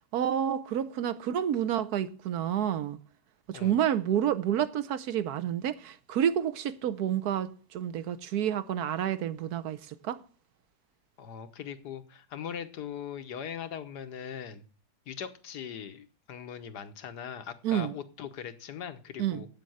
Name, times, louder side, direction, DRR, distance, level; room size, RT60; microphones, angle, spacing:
voice 1, 0.1-3.0 3.5-10.2 17.6-18.0 19.2-19.4, right 10 dB, 70° right, 1.3 m, -29 dB
voice 2, 11.2-14.6 15.1-19.5, left 8 dB, 85° left, 1.6 m, -40 dB
8.4 x 7.6 x 7.7 m
omnidirectional pair, 1.7 m